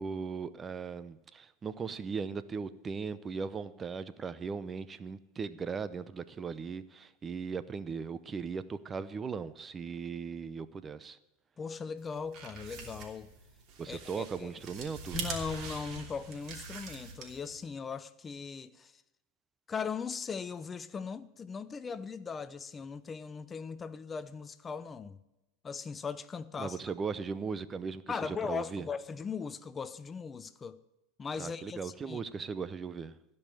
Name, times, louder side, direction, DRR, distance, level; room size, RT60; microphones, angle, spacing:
voice 1, 0.0-11.2 13.8-15.2 26.6-28.9 31.4-33.1, right 5 dB, 25° right, 0.6 m, -38 dB
voice 2, 11.6-13.3 13.9-14.5 15.1-19.0 19.7-25.2 25.6-26.9 28.1-30.8 31.2-32.2, left 5 dB, 25° left, 0.6 m, -39 dB
sound 1, 12.1-17.6, right 5 dB, 45° right, 3.0 m, -43 dB
16.0 x 5.5 x 8.9 m
hypercardioid pair, 105°, 0 cm